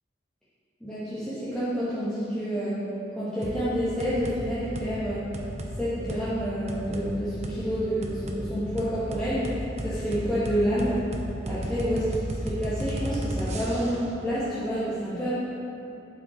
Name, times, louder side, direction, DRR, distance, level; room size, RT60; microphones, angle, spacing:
voice 1, 0.8-2.8 3.2-5.2 5.8-11.0 11.5-15.3, equal, 5° left, -14 dB, 1.9 m, -28 dB
sound 1, 3.4-3.6 4.0-4.4 4.7-4.9 5.3-5.7 6.1-6.2 6.7-7.1 7.4-7.6 8.0-8.4 8.8-14.1, right 1 dB, 40° right, 0.9 m, -33 dB
11.5 x 6.1 x 4.6 m, 2.9 s
head